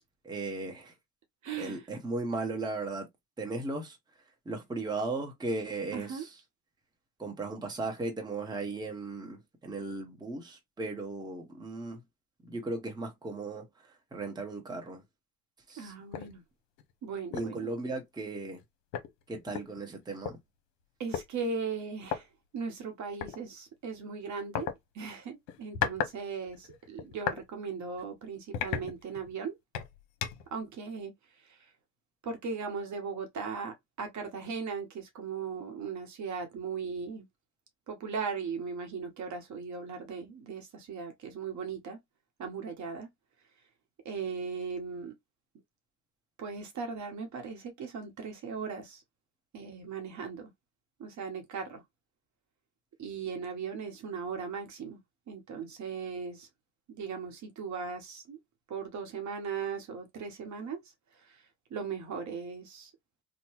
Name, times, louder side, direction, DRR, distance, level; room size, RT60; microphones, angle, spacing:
voice 1, 0.2-0.9 1.6-3.1 3.4-4.0 4.4-6.4 7.2-12.0 12.4-15.0 15.7-15.9 17.3-18.6 19.3-20.4, right 3 dB, 10° right, 0.9 m, -36 dB
voice 2, 1.4-1.8 5.9-6.2 15.8-16.4 17.0-17.7 21.0-22.3 22.5-24.7 24.9-29.5 30.5-31.1 31.4-31.7 32.2-37.3 37.9-42.0 42.4-43.1 44.0-45.1 46.4-49.0 49.5-50.5 51.0-51.8 53.0-55.0 55.3-56.5 56.9-58.4 58.7-60.8 61.1-61.4 61.7-62.9, right 5 dB, 40° right, 1.0 m, -38 dB
sound 1, 16.1-16.3 16.8-16.9 17.3-17.6 18.6-18.7 18.9-20.3 21.1-21.3 22.0-22.2 23.2-23.4 24.5-24.7 25.5-26.2 26.5-27.4 27.9-28.0 28.5-29.3 29.7-30.5, left 9 dB, 65° left, 0.9 m, -35 dB
2.9 x 2.2 x 2.9 m
hypercardioid pair, 85°, 46 cm